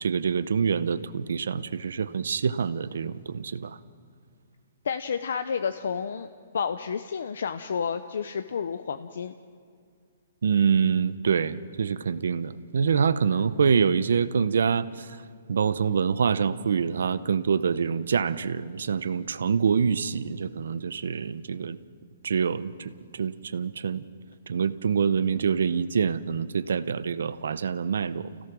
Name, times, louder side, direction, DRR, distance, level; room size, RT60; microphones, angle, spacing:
voice 1, 0.0-3.8 10.4-21.8 22.2-24.0 24.5-28.4, right 6 dB, 75° right, 15 dB, 0.8 m, -26 dB
voice 2, 4.8-6.3 6.5-9.3, left 6 dB, 65° left, 10 dB, 0.8 m, -30 dB
29.0 x 17.0 x 6.2 m, 2.1 s
hypercardioid pair, 180°, 0 cm